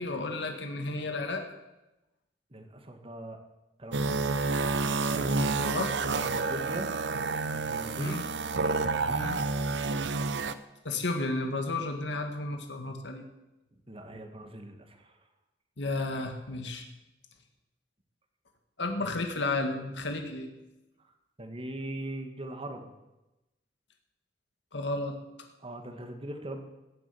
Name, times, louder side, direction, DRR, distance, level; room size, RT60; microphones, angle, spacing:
voice 1, 0.0-1.4 5.2-5.9 8.0-8.3 9.1-9.4 10.8-13.2 15.8-16.8 18.8-20.5 24.7-25.2, left 2 dB, 75° left, 4 dB, 1.9 m, -32 dB
voice 2, 2.5-3.4 3.8-4.2 6.3-6.9 7.5-8.2 8.8-9.4 13.9-15.0 19.0-19.1 21.4-22.9 25.6-26.6, right 1 dB, 30° right, 5 dB, 1.9 m, -40 dB
sound 1, 3.9-10.5, right 4 dB, 70° right, 0.8 m, -29 dB
16.5 x 7.6 x 9.4 m, 0.99 s
head